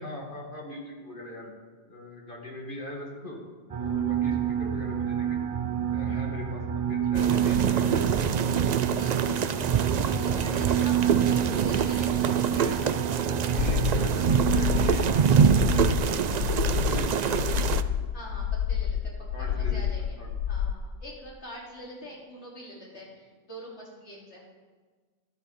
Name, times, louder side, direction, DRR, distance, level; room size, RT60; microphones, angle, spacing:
voice 1, 0.0-1.5 1.9-3.4 3.8-5.4 5.9-9.2 11.1-11.6 12.5-12.8 13.5-16.6 16.9-17.7 19.3-19.8 20.2-20.3, left 1 dB, 40° left, -1 dB, 2.4 m, -40 dB
sound 1, 3.7-15.9, right 9 dB, 35° right, 0.8 m, -28 dB
sound 2, 7.1-17.8, right 7 dB, 65° right, 0.4 m, -26 dB
voice 2, 8.9-12.7 18.1-20.2 20.5-24.4, equal, 60° left, -4 dB, 3.6 m, -44 dB
sound 3, 13.6-20.7, left 9 dB, 80° left, 1.0 m, -28 dB
13.5 x 12.0 x 4.4 m, 1.4 s
omnidirectional pair, 1.3 m